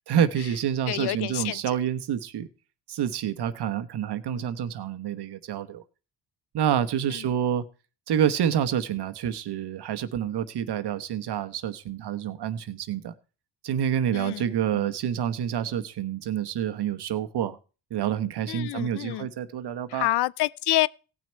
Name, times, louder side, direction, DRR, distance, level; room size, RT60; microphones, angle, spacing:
voice 1, 0.1-2.5 2.9-5.8 6.5-7.6 8.1-13.1 13.6-17.6 17.9-20.1, right 9 dB, 60° right, 1.1 m, -28 dB
voice 2, 0.9-1.6 4.3-4.5 7.1-7.2 14.1-14.5 14.7-14.9 18.5-19.3 19.9-20.9, left 16 dB, 60° left, 0.5 m, -28 dB
17.5 x 6.1 x 4.5 m
cardioid pair, 75°, 45 cm